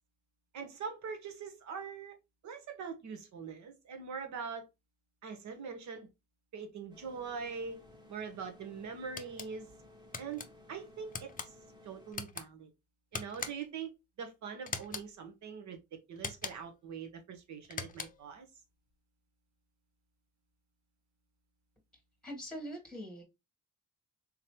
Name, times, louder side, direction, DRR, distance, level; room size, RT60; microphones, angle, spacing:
voice 1, 0.5-2.1 2.4-4.7 5.2-6.1 6.5-7.8 8.1-9.7 10.2-11.3 11.8-12.7 13.1-13.9 14.2-18.5, right 6 dB, 70° right, 1.1 m, -43 dB
sound 1, 6.9-12.1, left 2 dB, 15° right, 1.3 m, -57 dB
sound 2, 9.2-9.5 10.1-10.5 11.1-11.5 12.1-12.5 13.1-13.8 14.7-15.1 16.2-16.7 17.6-18.3, left 5 dB, 30° left, 0.6 m, -41 dB
voice 2, 22.2-23.2, equal, ahead, 1.4 m, -42 dB
3.7 x 3.1 x 2.9 m
cardioid pair, 90°, 30 cm